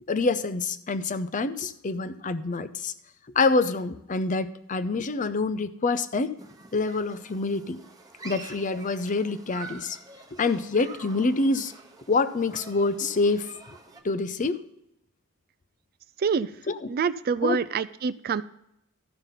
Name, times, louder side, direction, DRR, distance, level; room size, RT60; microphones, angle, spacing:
voice 1, 0.1-2.9 3.4-6.3 6.7-7.8 8.2-10.0 10.3-11.7 12.1-13.5 14.0-14.6 16.7-16.9 17.4-17.6, left 3 dB, 40° left, 13 dB, 0.6 m, -26 dB
Human group actions, 6.4-14.0, right 4 dB, 20° right, 1.1 m, -47 dB
voice 2, 16.2-16.5 16.9-18.4, right 5 dB, 45° right, 16 dB, 0.4 m, -26 dB
13.5 x 5.3 x 5.7 m, 0.80 s
head